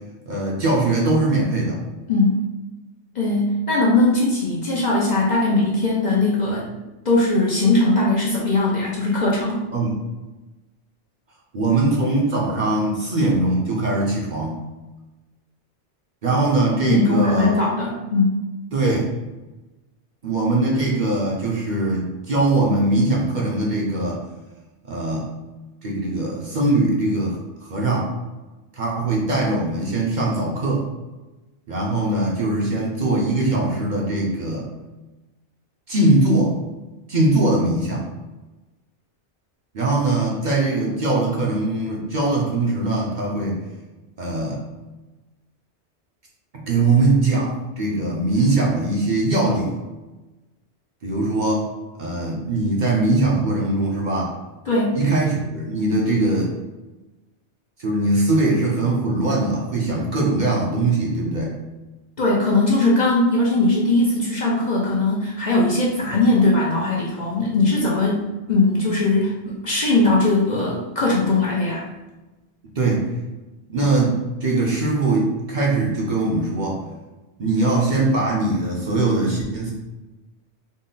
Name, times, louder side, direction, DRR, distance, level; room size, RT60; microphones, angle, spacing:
voice 1, 0.3-1.8 9.7-9.9 11.5-14.6 16.2-17.7 18.7-19.1 20.2-24.2 24.9-25.3 25.8-28.1 28.7-30.9 31.7-34.6 35.9-36.5 37.1-38.1 39.7-43.6 44.2-44.6 46.5-49.7 51.0-51.7 52.0-54.3 54.9-56.5 57.8-61.6 72.8-73.1 73.7-76.8 77.4-79.7, right 2 dB, 50° right, -3 dB, 0.7 m, -21 dB
voice 2, 3.1-6.7 7.0-9.6 16.8-18.5 54.7-55.0 62.2-68.2 68.5-71.8, left 2 dB, 50° left, -4 dB, 0.7 m, -19 dB
3.8 x 2.0 x 3.9 m, 1.1 s
omnidirectional pair, 1.2 m